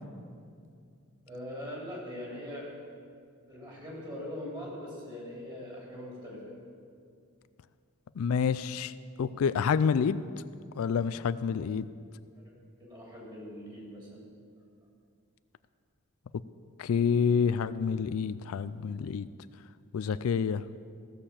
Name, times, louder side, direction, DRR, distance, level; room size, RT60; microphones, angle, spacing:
voice 1, 1.3-2.7 3.5-6.5 12.4-12.5 12.8-14.3, left 1 dB, 20° right, -4 dB, 3.2 m, -41 dB
voice 2, 8.2-8.9 9.2-10.2 10.8-11.9 16.8-19.3 19.9-20.6, left 6 dB, 75° left, 15 dB, 0.4 m, -28 dB
15.5 x 6.7 x 7.3 m, 2.3 s
head